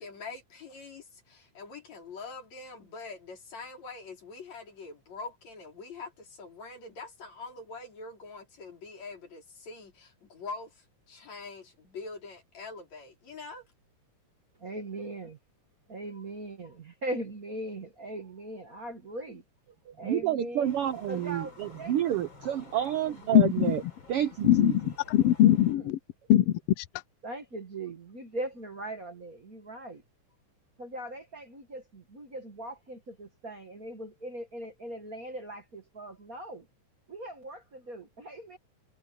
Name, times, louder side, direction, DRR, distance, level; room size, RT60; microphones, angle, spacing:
voice 1, 0.0-13.7, left 4 dB, 60° left, 5.7 m, -44 dB
voice 2, 14.6-15.4 15.9-19.4 19.9-20.7 21.1-21.9 22.7-23.4 25.1-25.3 25.8-25.9 27.2-30.0 30.8-36.7 37.1-38.6, right 1 dB, 35° right, 1.7 m, -40 dB
voice 3, 19.9-23.8 24.1-24.8, right 11 dB, 90° right, 1.2 m, -29 dB
sound 1, 20.6-25.8, left 3 dB, 35° left, 5.3 m, -51 dB
voice 4, 23.3-23.7 24.4-26.0 26.3-26.8, left 12 dB, 75° left, 1.4 m, -22 dB
omnidirectional pair, 3.6 m